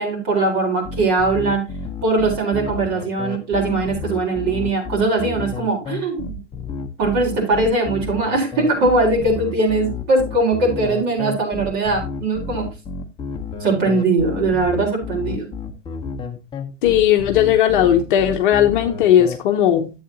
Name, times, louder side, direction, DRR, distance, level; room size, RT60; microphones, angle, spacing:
voice 1, 0.0-1.7 2.0-6.4 7.0-12.7 13.6-15.5, right 3 dB, 40° right, 0 dB, 4.4 m, -20 dB
sound 1, 0.8-19.4, left 5 dB, 15° left, 0.9 m, -31 dB
voice 2, 16.8-19.9, left 10 dB, 45° left, 5 dB, 0.9 m, -16 dB
11.0 x 8.0 x 2.8 m, 0.28 s
figure-of-eight pair, 105°, 36 cm